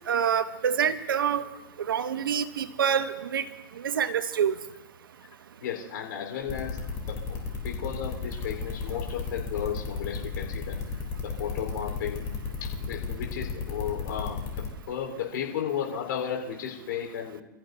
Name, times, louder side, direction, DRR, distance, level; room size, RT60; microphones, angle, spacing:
voice 1, 0.1-1.4 1.9-3.5 3.8-4.5, right 8 dB, 85° right, 12 dB, 1.0 m, -26 dB
voice 2, 5.6-6.8 7.1-7.4 7.6-10.8 11.2-12.3 12.8-14.4 14.9-17.4, left 8 dB, 70° left, 0 dB, 4.4 m, -34 dB
sound 1, 6.5-14.7, left 5 dB, 30° left, 3.7 m, -33 dB
29.0 x 14.5 x 2.8 m, 0.93 s
hypercardioid pair, 125°, 11 cm